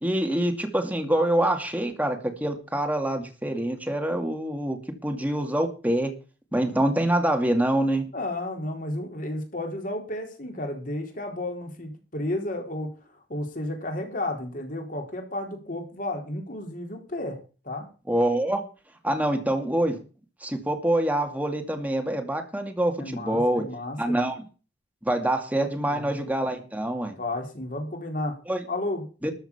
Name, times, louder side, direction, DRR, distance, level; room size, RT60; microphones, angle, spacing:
voice 1, 0.0-6.1 6.5-8.0 18.1-18.6 19.0-20.0 20.4-23.6 24.0-24.4 25.0-27.2 28.5-28.6 29.2-29.3, right 1 dB, 10° right, 5 dB, 2.4 m, -25 dB
voice 2, 8.1-17.4 17.6-17.9 23.0-24.2 25.9-26.1 27.2-28.4 28.7-29.1, left 1 dB, 50° left, 3 dB, 4.1 m, -32 dB
13.5 x 7.0 x 7.2 m, 0.36 s
head